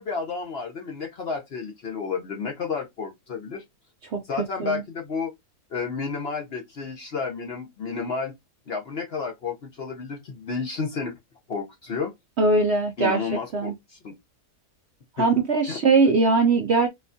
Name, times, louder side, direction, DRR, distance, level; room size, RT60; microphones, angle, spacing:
voice 1, 0.0-3.6 4.2-5.3 5.7-8.3 8.7-11.1 11.5-12.1 13.0-14.1 15.2-15.3 15.7-15.8, left 5 dB, 55° left, 0.7 m, -31 dB
voice 2, 12.4-13.2 13.5-13.7 15.2-16.9, right 3 dB, 65° right, 0.6 m, -20 dB
4.2 x 2.3 x 2.5 m
omnidirectional pair, 1.7 m